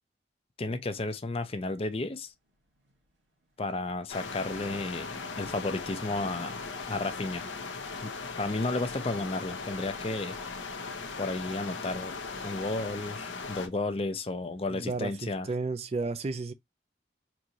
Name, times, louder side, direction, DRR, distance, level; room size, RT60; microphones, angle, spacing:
voice 1, 0.6-2.3 3.6-6.6 6.9-7.5 8.0-10.4 11.2-12.2 12.4-15.5, left 2 dB, 30° left, 0.5 m, -33 dB
sound 1, 1.2-15.6, equal, 85° right, 1.8 m, -61 dB
sound 2, 4.1-13.7, left 4 dB, 85° left, 0.9 m, -38 dB
voice 2, 14.7-16.5, right 3 dB, 35° right, 0.3 m, -33 dB
4.5 x 2.6 x 2.9 m
head